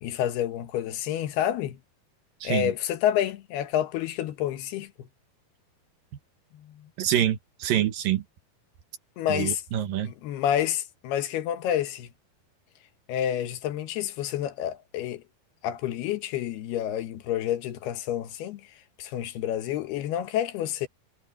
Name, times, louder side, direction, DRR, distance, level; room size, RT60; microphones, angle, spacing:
voice 1, 0.0-1.8 2.4-5.1 6.5-6.9 9.2-9.6 10.0-12.1 13.1-15.2 15.6-18.6 19.0-20.9, left 11 dB, 80° left, 3.2 m, -29 dB
voice 2, 2.4-2.7 7.0-8.2 9.3-10.1, right 11 dB, 65° right, 2.8 m, -26 dB
omnidirectional pair, 4.6 m